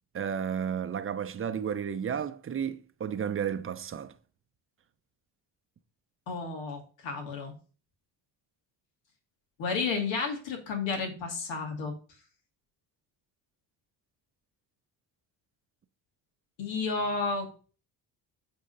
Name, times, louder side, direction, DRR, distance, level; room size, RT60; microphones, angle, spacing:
voice 1, 0.1-4.1, right 8 dB, 30° right, 0.6 m, -32 dB
voice 2, 6.3-7.5 9.6-11.9 16.6-17.5, left 4 dB, 80° left, 2.4 m, -32 dB
8.5 x 3.8 x 5.6 m
cardioid pair, 110°, 44 cm